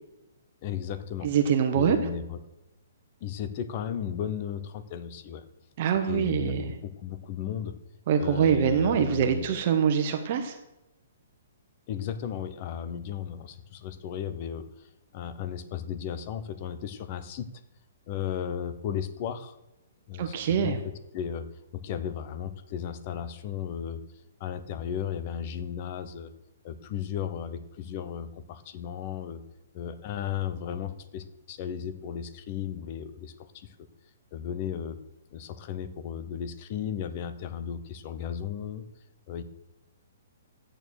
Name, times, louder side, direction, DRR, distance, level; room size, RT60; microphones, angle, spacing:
voice 1, 0.6-1.3 1.7-2.4 3.2-5.4 6.1-7.7 8.2-9.5 11.9-14.9 15.1-17.5 18.1-19.6 20.1-20.8 21.1-21.5 21.7-24.0 24.4-26.3 26.6-29.4 29.7-33.7 34.3-35.0 35.3-38.8 39.3-39.4, left 8 dB, 30° left, 12 dB, 0.9 m, -35 dB
voice 2, 1.2-2.0 5.8-6.7 8.1-10.6 20.2-20.8, right 8 dB, 35° right, 6 dB, 1.2 m, -24 dB
13.5 x 9.1 x 6.4 m, 0.95 s
hypercardioid pair, 170°, 0 cm